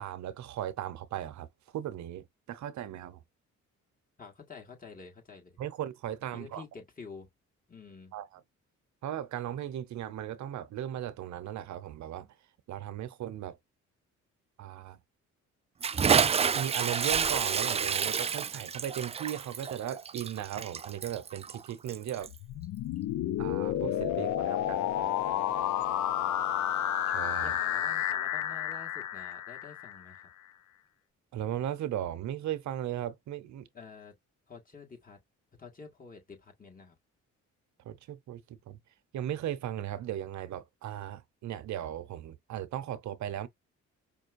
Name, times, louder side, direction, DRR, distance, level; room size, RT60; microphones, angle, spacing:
voice 1, 0.0-1.5 1.7-3.2 5.6-6.6 8.1-8.3 9.0-12.3 12.7-13.6 14.6-15.0 16.1-22.3 23.4-25.0 27.1-27.6 31.3-33.6 37.8-38.8 39.1-43.5, right 11 dB, 70° right, 0.8 m, -37 dB
voice 2, 4.2-5.6 6.3-7.3 7.7-8.1 27.4-30.3 33.7-34.2 34.5-35.2 35.6-37.0, left 5 dB, 30° left, 1.7 m, -49 dB
Bathtub (filling or washing) / Splash splatter, 15.8-22.4, right 6 dB, 20° right, 0.3 m, -29 dB
sound 1, 22.3-30.2, left 11 dB, 70° left, 0.6 m, -31 dB
5.3 x 2.2 x 2.5 m
cardioid pair, 90°, 30 cm